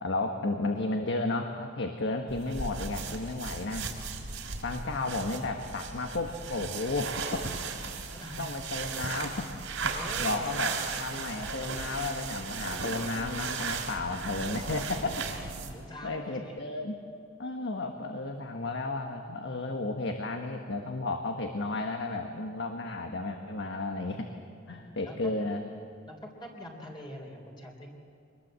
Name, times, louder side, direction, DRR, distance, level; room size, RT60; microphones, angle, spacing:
voice 1, 0.0-3.9 4.6-7.6 8.4-9.5 9.8-9.9 10.2-15.3 16.0-17.0 17.4-24.3 24.7-25.6, left 2 dB, 65° left, 4 dB, 1.4 m, -33 dB
sound 1, 2.3-15.8, right 5 dB, 80° right, 3.2 m, -36 dB
voice 2, 4.3-4.7 8.1-8.4 9.9-11.6 15.7-16.6 24.7-25.3 26.1-27.9, equal, 25° left, 0 dB, 3.7 m, -45 dB
24.5 x 21.0 x 7.7 m, 2.4 s
head